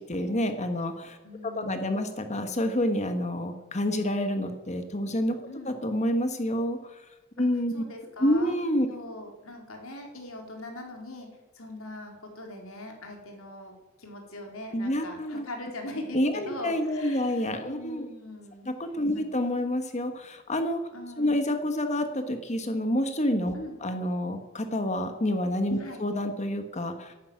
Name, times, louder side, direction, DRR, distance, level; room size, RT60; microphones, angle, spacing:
voice 1, 0.0-1.2 1.6-5.4 5.6-6.8 7.4-7.7 8.2-8.9 14.7-15.5 16.1-18.1 18.6-20.8 21.2-23.5 23.8-27.1, left 1 dB, 30° left, 7 dB, 1.4 m, -28 dB
voice 2, 1.2-2.2 5.5-5.8 7.4-7.5 7.7-8.5 8.9-11.3 11.5-13.7 14.0-18.7 19.1-19.2 20.9-21.4 23.5-23.8 25.8-26.0, left 1 dB, 70° left, 2 dB, 3.9 m, -41 dB
12.0 x 11.0 x 9.5 m, 1.1 s
head